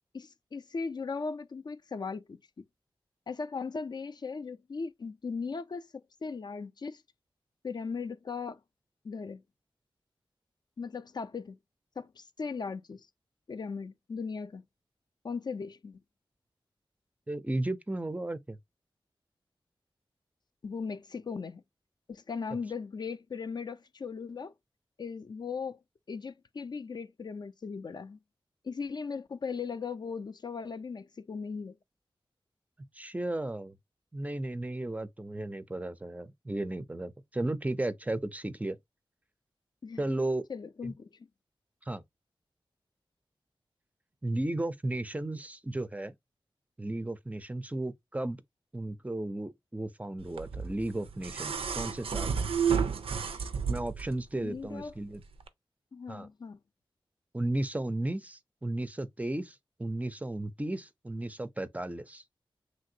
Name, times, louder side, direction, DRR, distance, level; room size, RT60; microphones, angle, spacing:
voice 1, 0.1-2.6 3.3-7.0 7.6-8.6 9.0-9.4 10.8-11.6 12.0-13.1 13.5-14.6 15.2-16.0 20.6-21.6 22.1-24.5 25.0-25.8 26.1-28.2 28.6-31.8 39.8-40.0 40.5-41.1 54.3-54.9 55.9-56.6, left 5 dB, 50° left, 0.4 m, -38 dB
voice 2, 17.3-18.6 33.0-33.7 34.1-38.8 40.0-40.5 40.8-40.9 41.9-42.0 44.2-46.1 46.8-48.4 48.7-52.4 53.7-55.2 56.1-56.3 57.3-62.2, right 1 dB, 15° right, 0.4 m, -34 dB
sound 1, 50.4-54.1 55.4-55.5, right 6 dB, 85° right, 0.4 m, -31 dB
3.1 x 2.5 x 2.7 m
cardioid pair, 55°, 9 cm